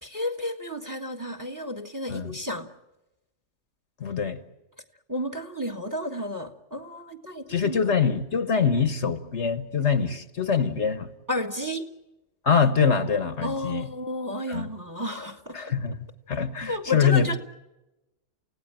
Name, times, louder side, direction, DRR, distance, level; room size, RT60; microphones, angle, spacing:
voice 1, 0.0-2.7 5.1-7.9 11.3-11.9 13.4-15.7 16.7-17.4, left 1 dB, 15° right, 1.6 m, -32 dB
voice 2, 4.0-4.4 7.5-11.1 12.4-13.9 14.5-14.7 15.5-17.4, left 6 dB, 60° left, 1.4 m, -24 dB
29.5 x 17.0 x 9.0 m
omnidirectional pair, 1.4 m